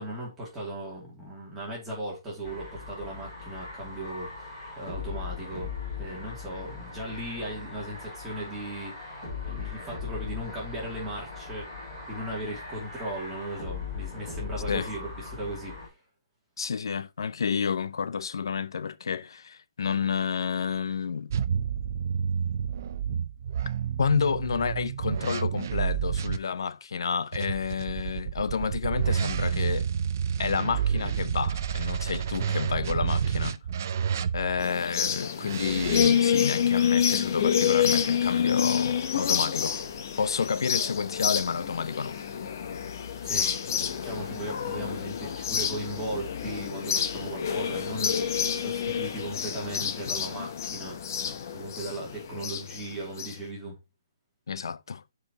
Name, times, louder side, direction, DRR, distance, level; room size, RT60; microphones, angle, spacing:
voice 1, 0.0-9.1 9.4-11.7 12.1-15.9 32.4-32.5 43.2-43.5 44.0-48.2 48.5-51.3 51.5-53.8, right 1 dB, 5° right, 2.6 m, -37 dB
sound 1, 2.4-15.9, left 5 dB, 15° left, 5.2 m, -39 dB
voice 2, 16.6-21.3 24.0-29.9 30.4-33.6 34.3-39.7 40.2-42.2 54.5-55.0, left 6 dB, 75° left, 0.5 m, -30 dB
sound 2, 21.3-26.4 27.3-34.7 35.4-36.1, right 7 dB, 40° right, 0.4 m, -29 dB
sound 3, 34.6-53.3, left 8 dB, 40° left, 0.9 m, -28 dB
11.5 x 4.8 x 2.9 m
hypercardioid pair, 175°, 2 cm